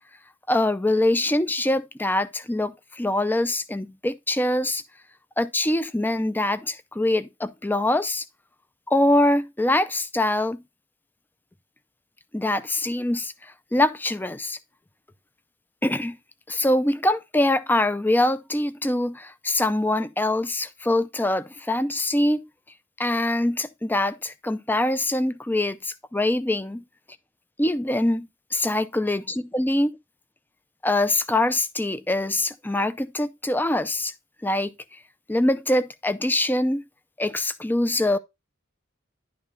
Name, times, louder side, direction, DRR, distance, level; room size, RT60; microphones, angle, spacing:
voice 1, 0.5-4.8 5.4-8.2 8.9-10.6 12.3-14.6 15.8-16.2 16.5-22.4 23.0-26.8 27.6-30.0 30.8-34.1 34.4-34.7 35.3-36.8 37.2-38.2, left 1 dB, 10° left, 0.5 m, -24 dB
11.0 x 4.4 x 4.0 m
head